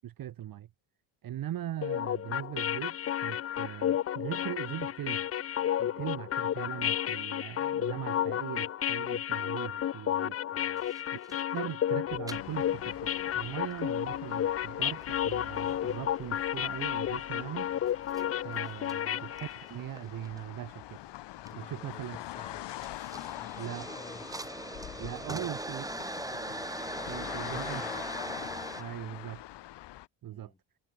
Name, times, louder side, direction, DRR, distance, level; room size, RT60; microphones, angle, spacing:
voice 1, 0.0-0.7 1.2-5.2 5.8-10.3 11.3-17.7 18.4-21.1 21.5-22.2 23.6-23.9 25.0-25.9 27.1-27.8 28.8-29.4 30.2-30.5, right 12 dB, 45° right, 0.8 m, -40 dB
sound 1, 1.8-19.7, left 11 dB, 30° left, 0.4 m, -32 dB
voice 2, 10.5-10.9 18.8-19.0 21.4-23.0 23.4-24.5 24.9-26.5 27.1-28.1 29.0-29.4 30.3-30.6, left 2 dB, 15° left, 5.9 m, -52 dB
sound 2, 10.8-11.6 12.3-12.4 13.6-13.8 14.3-14.4 15.0-15.7 16.2-16.9 18.1-18.2 18.9-19.0 19.3-20.4 21.5-21.7 22.2-22.3 22.7-28.8, right 2 dB, 5° right, 1.2 m, -40 dB
sound 3, 12.3-30.1, left 15 dB, 60° left, 0.9 m, -44 dB
cardioid pair, 95°, 48 cm